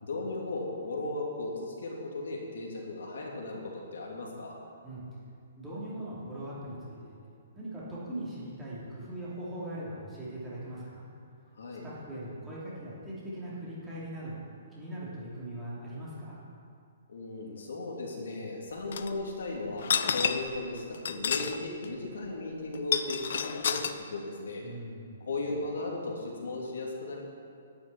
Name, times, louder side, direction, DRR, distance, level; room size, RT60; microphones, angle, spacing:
voice 1, 0.0-4.6 11.5-11.8 17.1-24.6 25.3-27.2, left 2 dB, 80° left, -2 dB, 3.2 m, -36 dB
voice 2, 5.5-7.2 7.5-11.1 11.8-14.4 14.7-16.4 24.6-25.3, right 1 dB, 5° right, -9 dB, 3.0 m, -40 dB
sound 1, 18.9-19.1 19.8-20.6 20.9-21.6 21.8-21.9 22.7-23.9, left 7 dB, 55° left, 0.7 m, -29 dB
11.5 x 7.4 x 9.1 m, 2.3 s
hypercardioid pair, 175°, 0 cm